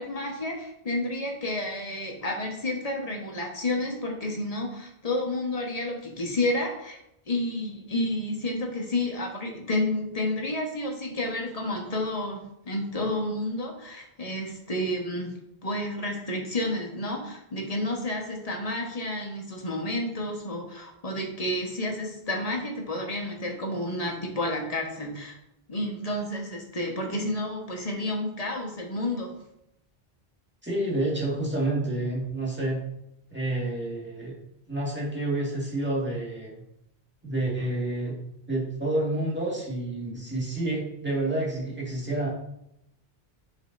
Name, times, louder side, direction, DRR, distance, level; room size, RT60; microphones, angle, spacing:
voice 1, 0.0-7.0 7.3-15.3 15.6-25.4 25.7-29.3, left 1 dB, 35° left, 0 dB, 1.3 m, -30 dB
voice 2, 30.6-32.8 33.3-34.3 34.7-36.5 37.2-38.1 38.5-42.3, right 2 dB, 10° right, -4 dB, 1.9 m, -29 dB
7.7 x 6.4 x 2.6 m, 0.81 s
omnidirectional pair, 1.1 m